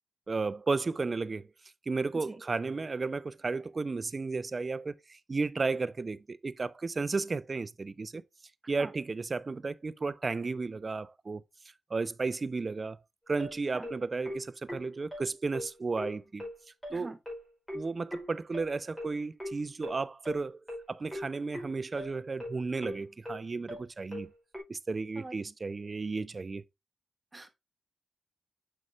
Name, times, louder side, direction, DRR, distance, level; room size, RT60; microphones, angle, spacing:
voice 1, 0.3-1.5 1.9-8.2 8.7-11.4 11.9-13.0 13.3-16.5 16.9-17.1 17.7-20.6 20.9-24.3 24.7-26.6, right 4 dB, 45° right, 0.5 m, -33 dB
voice 2, 2.3-2.4 8.8-8.9 13.7-13.9 16.9-17.2 25.2-25.4 27.3-27.5, right 2 dB, 30° right, 1.0 m, -43 dB
sound 1, 13.4-24.6, left 1 dB, ahead, 4.3 m, -41 dB
6.3 x 5.5 x 3.1 m
cardioid pair, 50°, 0 cm